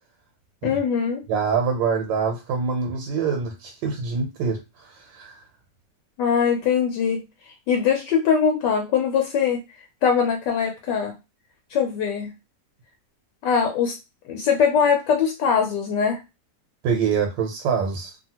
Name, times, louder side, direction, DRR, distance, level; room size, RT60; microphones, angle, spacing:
voice 1, 0.6-1.2 6.2-7.2 7.7-9.6 10.0-11.1 11.7-12.3 13.4-14.0 14.3-16.2, left 7 dB, 75° left, 3 dB, 1.2 m, -21 dB
voice 2, 1.3-5.4 16.8-18.1, right 5 dB, 85° right, 3 dB, 1.3 m, -25 dB
2.7 x 2.7 x 2.8 m, 0.25 s
omnidirectional pair, 2.0 m